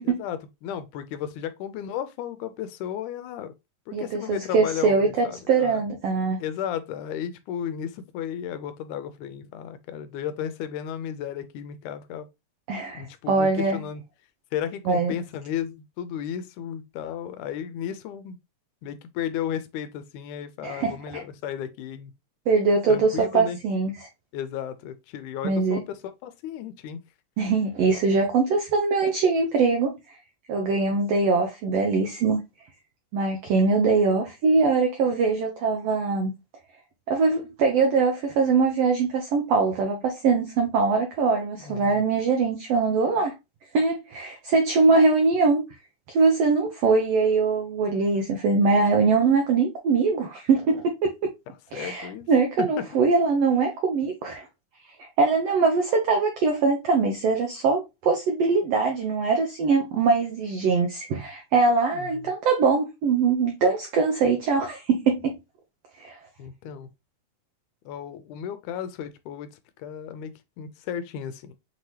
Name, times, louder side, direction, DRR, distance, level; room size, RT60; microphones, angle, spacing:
voice 1, 0.1-3.5 3.9-5.8 6.4-12.3 12.9-14.0 14.5-18.4 18.8-22.1 22.9-23.6 24.3-27.0 41.6-42.0 51.7-52.3 52.6-52.7 61.9-62.1 66.4-66.9 67.9-69.5 69.8-71.5, left 9 dB, 85° left, 2.0 m, -34 dB
voice 2, 3.9-6.4 12.7-13.8 14.9-15.1 20.6-21.2 22.5-24.1 25.4-25.8 27.4-29.9 30.5-32.4 33.1-36.3 37.1-43.3 43.7-45.6 46.1-51.3 51.7-54.4 55.0-65.3 66.0-66.2, right 4 dB, 70° right, 1.5 m, -22 dB
5.8 x 2.8 x 3.1 m
omnidirectional pair, 3.5 m